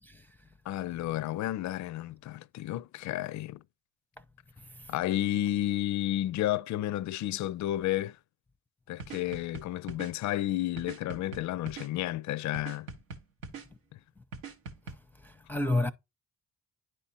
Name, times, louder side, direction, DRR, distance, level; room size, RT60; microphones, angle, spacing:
voice 1, 0.0-0.5 4.6-4.9 14.2-14.3 14.9-15.9, left 2 dB, 5° left, 0.6 m, -33 dB
voice 2, 0.7-3.6 4.9-8.2 8.9-12.9, left 13 dB, 50° left, 0.4 m, -31 dB
sound 1, 9.0-10.1 10.8-11.9 12.5-13.7 14.3-15.0, right 4 dB, 90° right, 0.8 m, -42 dB
10.0 x 4.3 x 2.7 m
hypercardioid pair, 45°, 39 cm